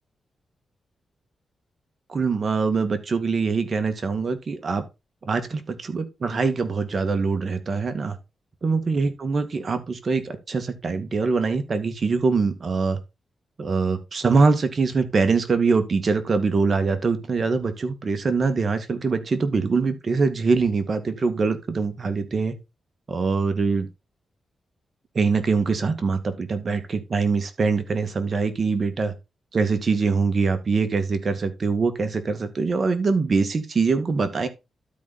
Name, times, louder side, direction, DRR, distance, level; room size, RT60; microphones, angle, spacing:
voice 1, 2.1-4.8 5.2-8.2 8.6-13.0 13.6-22.5 23.1-23.9 25.1-29.1 29.5-34.5, right 4 dB, 50° right, 2.0 m, -23 dB
12.5 x 4.2 x 4.2 m
cardioid pair, 75°, 0 cm